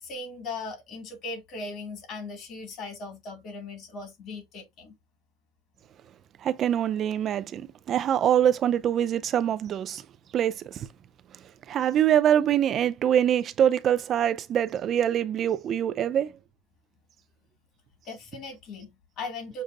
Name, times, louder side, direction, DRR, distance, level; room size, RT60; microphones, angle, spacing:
voice 1, 0.0-4.9 18.0-19.6, left 3 dB, 45° left, 2.1 m, -38 dB
voice 2, 6.4-10.0 10.3-10.9 11.7-16.3, right 10 dB, 40° right, 0.3 m, -24 dB
6.5 x 2.6 x 2.5 m
supercardioid pair, 110°, 0 cm